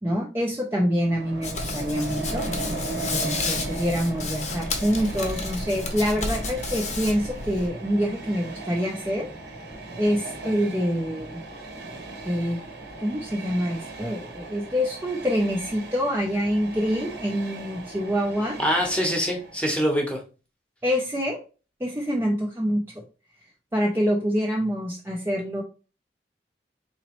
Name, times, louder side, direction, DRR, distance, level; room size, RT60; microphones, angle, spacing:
voice 1, 0.0-2.5 3.1-9.3 10.0-11.4 12.3-12.6 13.0-18.6 20.8-21.4 21.8-22.9 23.7-25.6, equal, 15° right, -1 dB, 0.5 m, -26 dB
Train, 0.9-19.8, right 2 dB, 70° right, 1.1 m, -37 dB
Hands, 1.4-7.7, left 3 dB, 40° left, 0.7 m, -32 dB
voice 2, 18.6-20.2, equal, 5° left, 1 dB, 0.9 m, -24 dB
4.0 x 3.0 x 3.0 m, 0.34 s
head